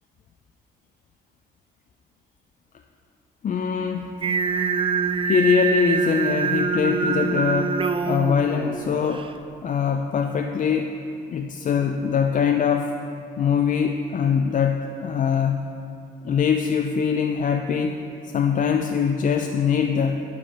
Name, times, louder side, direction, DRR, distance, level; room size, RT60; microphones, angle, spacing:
voice 1, 3.4-4.2 5.3-7.8 8.1-9.3 9.6-11.0 11.3-12.9 13.4-15.7 16.2-18.0 18.2-20.2, left 7 dB, 40° left, 4 dB, 0.4 m, -22 dB
Singing, 4.2-9.3, right 5 dB, 25° right, 0.4 m, -25 dB
11.0 x 4.7 x 5.1 m, 2.7 s
cardioid pair, 90°, 20 cm